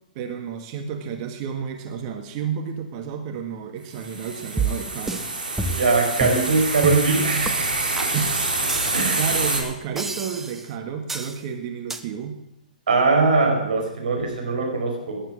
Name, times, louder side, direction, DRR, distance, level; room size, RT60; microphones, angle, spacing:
voice 1, 0.2-5.3 8.1-8.3 9.2-12.4, right 7 dB, 40° right, 5 dB, 1.7 m, -31 dB
sound 1, 3.9-9.6, right 2 dB, 90° right, 4.0 m, -26 dB
sound 2, 4.6-5.3 5.6-5.9 6.2-6.4 6.8-7.1 7.4-7.5 8.0-8.1 8.7-9.3 10.0-10.7 11.1-11.4 11.9-12.0, right 3 dB, 5° right, 1.1 m, -29 dB
voice 2, 5.7-7.7 8.9-9.2 12.9-15.2, right 3 dB, 70° right, 1 dB, 5.3 m, -21 dB
18.5 x 9.9 x 6.3 m, 0.87 s
figure-of-eight pair, 115°, 5 cm